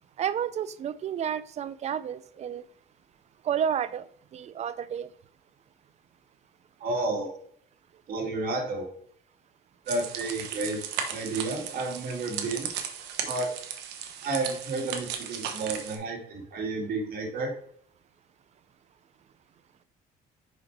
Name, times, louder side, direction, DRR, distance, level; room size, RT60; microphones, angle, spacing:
voice 1, 0.2-2.6 3.4-4.1 4.3-5.1, right 8 dB, 40° right, 0.5 m, -31 dB
voice 2, 6.8-7.3 8.1-8.9 9.9-10.8 11.1-12.7 13.2-13.5 14.2-17.5, right 2 dB, 60° right, 2.5 m, -31 dB
sound 1, 9.9-16.0, right 8 dB, 85° right, 1.1 m, -36 dB
5.1 x 5.1 x 4.7 m
cardioid pair, 110°, 17 cm